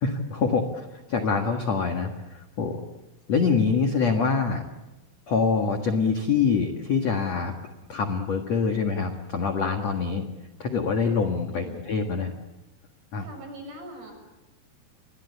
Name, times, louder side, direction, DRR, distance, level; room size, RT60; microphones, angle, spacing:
voice 1, 0.0-2.8 3.3-4.6 5.3-7.5 7.9-10.2 10.6-12.3 13.1-13.3, left 5 dB, 55° left, 4 dB, 1.9 m, -25 dB
voice 2, 3.3-3.7 8.7-9.0 11.5-12.0 13.2-14.1, right 1 dB, 60° right, 5 dB, 8.9 m, -43 dB
30.0 x 22.5 x 8.4 m, 1.0 s
omnidirectional pair, 5.6 m